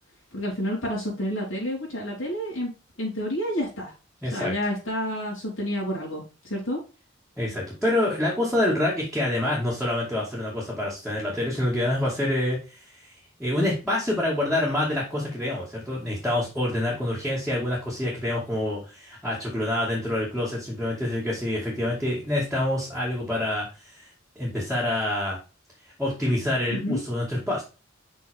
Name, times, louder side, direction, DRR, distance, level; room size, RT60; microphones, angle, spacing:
voice 1, 0.3-2.7 3.0-3.9 4.3-6.8 26.7-27.0, equal, 85° left, -5 dB, 3.7 m, -29 dB
voice 2, 4.2-4.5 7.4-13.1 13.4-24.1 24.4-25.4 26.0-27.6, left 1 dB, ahead, -7 dB, 2.2 m, -27 dB
6.1 x 5.6 x 3.6 m, 0.31 s
head